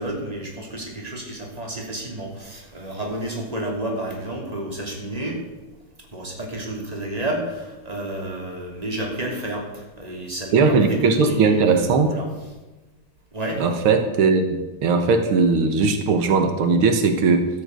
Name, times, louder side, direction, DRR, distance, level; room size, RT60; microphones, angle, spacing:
voice 1, 0.0-5.4 6.1-12.3 13.3-13.6, right 1 dB, 15° right, 0 dB, 3.0 m, -30 dB
voice 2, 10.5-12.1 13.6-14.6 14.8-17.5, right 4 dB, 80° right, 7 dB, 2.1 m, -18 dB
13.0 x 8.0 x 8.2 m, 1.1 s
omnidirectional pair, 2.3 m